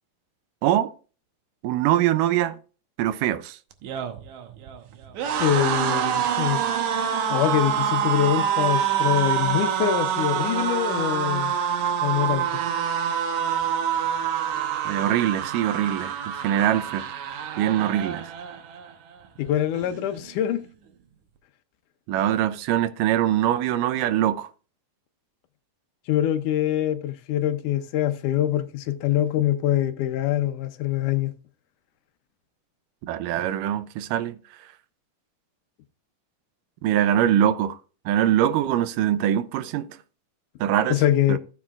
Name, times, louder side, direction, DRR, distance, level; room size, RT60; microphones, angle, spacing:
voice 1, 0.6-0.9 1.6-2.6 3.0-3.6 14.8-16.1 16.4-17.0 17.6-18.3 22.1-24.5 33.0-34.4 36.8-37.8 38.1-39.9 40.6-41.0 41.3-41.4, right 11 dB, 90° right, 2.3 m, -23 dB
sound 1, 3.7-18.9 19.3-19.5 19.7-20.5, right 8 dB, 70° right, 2.1 m, -26 dB
voice 2, 5.4-6.6 7.3-11.5 12.0-12.5 19.4-20.6 26.1-31.3 40.9-41.4, left 11 dB, 80° left, 2.2 m, -24 dB
15.5 x 7.4 x 2.4 m
omnidirectional pair, 3.7 m